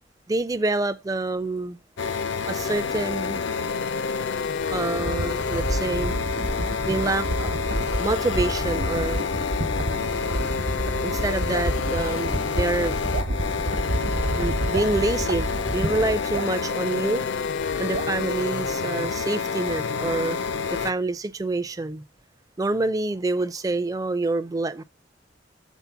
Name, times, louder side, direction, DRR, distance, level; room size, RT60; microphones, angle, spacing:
voice 1, 0.3-1.8 2.5-3.4 4.7-6.2 6.8-7.6 8.0-9.3 11.0-13.0 14.4-17.2 17.8-20.4 20.7-22.0 22.6-24.8, right 2 dB, 20° right, 0.4 m, -27 dB
sound 1, 2.0-20.9, left 5 dB, 70° left, 0.5 m, -28 dB
sound 2, 4.8-16.4, right 1 dB, 55° right, 0.9 m, -29 dB
Drip, 11.5-11.8 13.1-13.4 14.7-15.0 16.3-16.6 17.9-18.2, right 6 dB, 80° right, 0.6 m, -33 dB
7.2 x 4.1 x 5.7 m
head